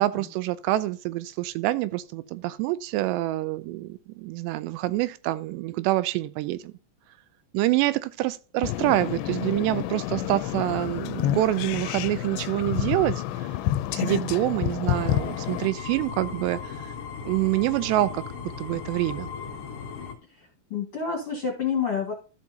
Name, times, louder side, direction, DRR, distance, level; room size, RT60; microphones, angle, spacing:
voice 1, 0.0-6.7 7.5-13.2 13.4-13.5 13.9-16.9 17.3-19.3, right 16 dB, 85° right, 2.7 m, -26 dB
sound 1, 8.6-15.7, left 13 dB, 85° left, 2.8 m, -29 dB
sound 2, 14.9-20.1, left 6 dB, 70° left, 1.4 m, -37 dB
voice 2, 20.3-22.1, left 6 dB, 45° left, 2.0 m, -29 dB
14.0 x 6.0 x 2.7 m
omnidirectional pair, 5.0 m